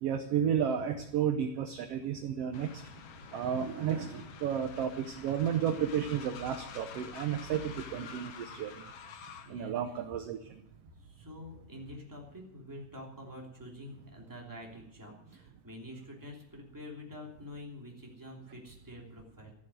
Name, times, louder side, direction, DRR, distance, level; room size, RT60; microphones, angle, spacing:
voice 1, 0.0-2.8 3.3-8.9 9.5-10.5, right 8 dB, 70° right, 8 dB, 1.5 m, -32 dB
Train, 2.5-9.6, left 7 dB, 60° left, 1.7 m, -48 dB
voice 2, 9.4-9.8 11.0-19.5, left 1 dB, 5° right, -1 dB, 2.6 m, -47 dB
14.0 x 7.4 x 9.2 m, 0.75 s
omnidirectional pair, 3.7 m